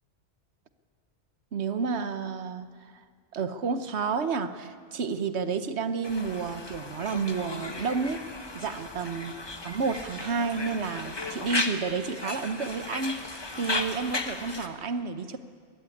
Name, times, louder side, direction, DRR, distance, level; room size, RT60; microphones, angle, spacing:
voice 1, 1.5-3.0 3.3-8.2 8.5-9.3 9.6-13.3 13.6-15.4, right 5 dB, 65° right, 10 dB, 1.2 m, -30 dB
Conversation, 6.0-14.7, left 2 dB, 20° left, 1.1 m, -35 dB
22.5 x 13.5 x 9.8 m, 2.1 s
omnidirectional pair, 1.2 m